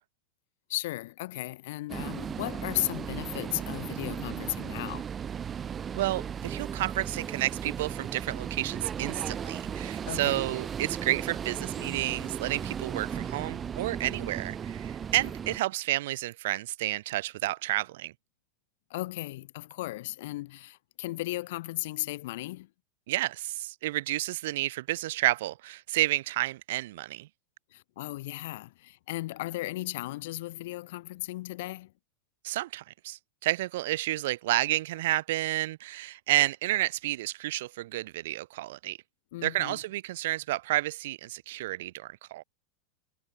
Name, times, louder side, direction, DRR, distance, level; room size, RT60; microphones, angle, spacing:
voice 1, 0.7-5.1 10.1-10.4 18.9-22.7 27.7-31.9 39.3-39.8, left 18 dB, 55° left, 1.2 m, -36 dB
sound 1, 1.9-15.6, right 8 dB, 20° right, 0.4 m, -36 dB
voice 2, 6.0-18.1 23.1-27.3 32.4-39.0 39.4-42.4, right 16 dB, 55° right, 1.4 m, -30 dB
figure-of-eight pair, 90°, 0 cm